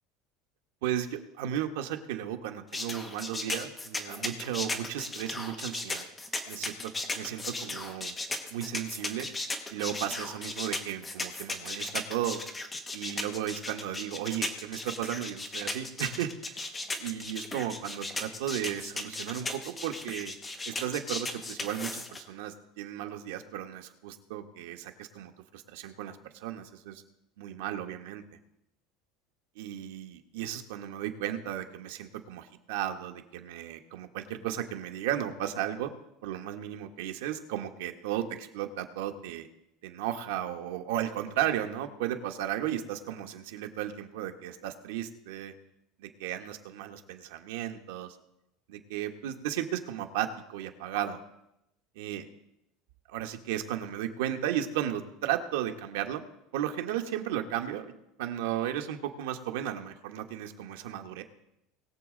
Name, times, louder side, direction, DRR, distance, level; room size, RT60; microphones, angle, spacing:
voice 1, 0.8-6.1 6.5-8.2 8.5-9.3 9.7-12.4 12.9-16.6 17.0-20.3 20.7-27.0 27.4-28.2 29.5-35.9 36.2-39.5 39.8-45.5 46.0-48.2 48.7-51.2 51.9-52.3 53.1-56.2 56.5-61.2, right 11 dB, 80° right, 5 dB, 1.2 m, -35 dB
sound 1, 2.7-22.2, left 2 dB, 10° left, 1.0 m, -36 dB
20.5 x 7.3 x 3.9 m, 0.84 s
cardioid pair, 180°, 0 cm